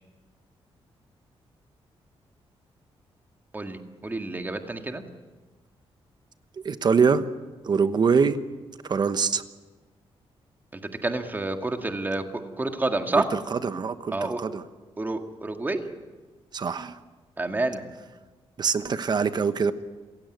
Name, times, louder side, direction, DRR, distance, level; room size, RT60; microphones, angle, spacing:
voice 1, 3.5-5.0 10.7-13.3 14.1-14.4 15.0-15.9 17.4-17.8, right 2 dB, 20° right, 5 dB, 2.0 m, -29 dB
voice 2, 6.5-7.2 7.6-8.4 8.8-9.4 13.1-14.6 16.5-17.0 18.6-19.7, right 5 dB, 45° right, 11 dB, 1.0 m, -24 dB
27.0 x 16.0 x 9.3 m, 1.3 s
wide cardioid pair, 140°, 10 cm